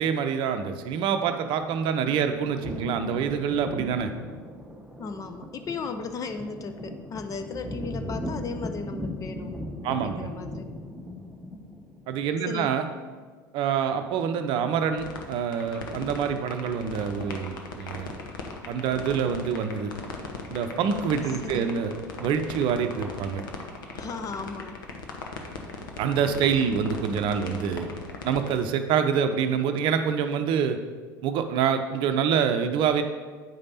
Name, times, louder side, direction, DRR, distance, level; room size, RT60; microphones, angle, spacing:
voice 1, 0.0-4.1 9.8-10.3 12.1-12.9 13.5-18.1 18.7-19.9 20.5-21.9 22.2-23.4 26.0-27.9 28.2-30.8 31.2-33.0, right 7 dB, 50° right, 8 dB, 0.6 m, -26 dB
sound 1, 1.6-12.0, left 1 dB, 5° right, 0.9 m, -38 dB
voice 2, 5.0-9.6 9.8-10.7 12.5-12.7 21.4-21.7 23.9-24.8, left 4 dB, 30° left, 8 dB, 0.7 m, -36 dB
sound 2, 15.0-28.6, left 4 dB, 75° left, 1.0 m, -37 dB
9.1 x 5.2 x 4.2 m, 1.5 s
figure-of-eight pair, 75°, 11 cm